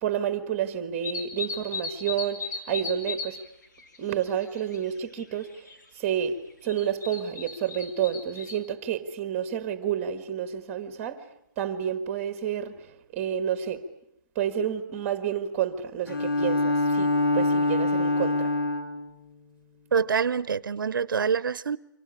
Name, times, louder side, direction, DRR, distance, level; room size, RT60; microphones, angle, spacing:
voice 1, 0.0-3.4 4.0-5.7 5.9-11.3 11.6-13.8 14.3-18.5, right 9 dB, 15° right, 1.5 m, -30 dB
sound 1, 1.0-3.3 3.6-4.8 5.2-5.8 6.6-8.6, left 4 dB, 60° left, 3.9 m, -36 dB
Bowed string instrument, 16.1-19.1, left 2 dB, 75° left, 2.5 m, -25 dB
voice 2, 19.9-21.8, right 6 dB, 80° right, 0.9 m, -25 dB
25.5 x 18.5 x 10.0 m
hypercardioid pair, 175°, 11 cm